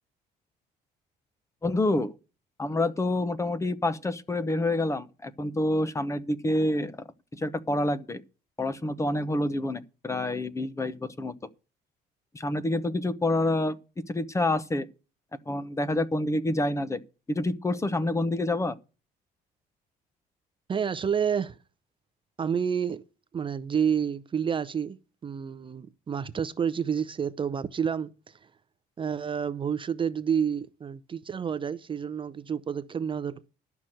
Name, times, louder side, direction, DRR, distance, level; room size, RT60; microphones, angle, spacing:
voice 1, 1.6-2.1 2.6-7.0 7.3-8.2 8.6-11.3 12.3-13.8 14.1-14.9 15.5-17.0 17.3-18.8, left 1 dB, 15° left, 0.9 m, -27 dB
voice 2, 20.7-21.6 22.4-23.0 23.3-28.3 29.0-33.5, right 7 dB, 30° right, 0.6 m, -29 dB
11.5 x 6.0 x 7.8 m
cardioid pair, 110°, 17 cm